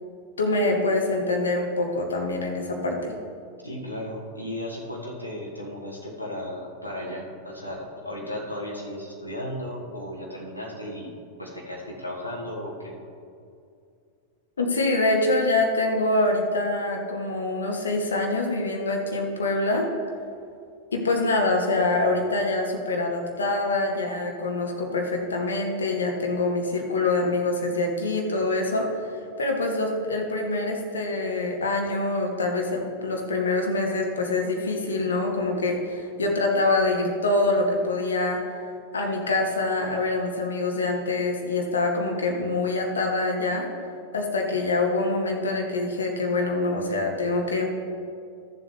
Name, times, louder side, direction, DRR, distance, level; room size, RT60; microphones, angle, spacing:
voice 1, 0.4-3.2 14.6-19.9 20.9-29.0 29.4-38.4 38.9-43.7 44.1-47.7, left 2 dB, 70° left, 2 dB, 1.3 m, -25 dB
voice 2, 3.6-11.1 11.4-13.0, left 1 dB, 90° left, -3 dB, 1.4 m, -35 dB
13.0 x 7.4 x 3.2 m, 2.5 s
figure-of-eight pair, 90°, 0 cm